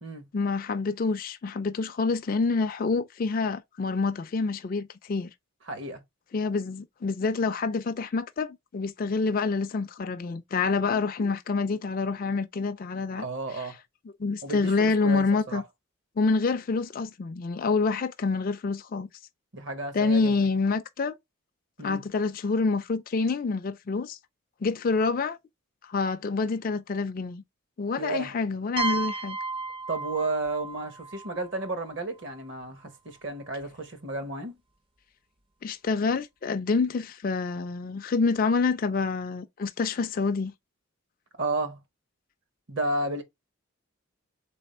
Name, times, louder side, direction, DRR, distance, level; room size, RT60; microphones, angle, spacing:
voice 1, 0.3-5.3 6.3-13.2 13.5-13.7 14.2-15.6 16.2-19.1 19.9-21.2 21.8-24.2 24.6-25.4 25.9-27.4 27.8-29.4 35.6-40.5, left 4 dB, 40° left, 0.3 m, -27 dB
voice 2, 5.7-6.0 13.2-13.8 14.4-15.6 19.5-20.4 21.8-22.0 28.0-28.3 29.9-34.6 41.4-41.8 42.7-43.2, right 2 dB, 55° right, 0.9 m, -32 dB
sound 1, 28.8-32.4, right 3 dB, 25° right, 0.4 m, -34 dB
3.5 x 3.4 x 4.1 m
head